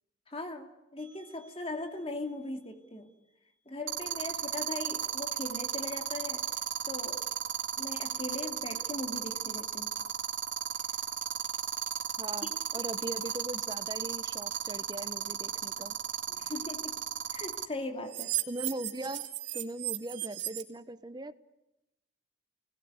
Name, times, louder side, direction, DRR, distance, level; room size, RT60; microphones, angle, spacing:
voice 1, 0.3-3.1 3.7-6.4 6.8-7.2 7.8-9.9 16.3-17.0 17.3-18.3, left 2 dB, 30° left, 5 dB, 2.8 m, -39 dB
sound 1, 1.0-1.3 3.9-17.6 18.1-20.6, right 9 dB, 80° right, 2.7 m, -34 dB
voice 2, 12.2-16.0 18.5-21.4, right 1 dB, 25° right, 12 dB, 1.1 m, -40 dB
30.0 x 20.0 x 9.7 m, 0.96 s
head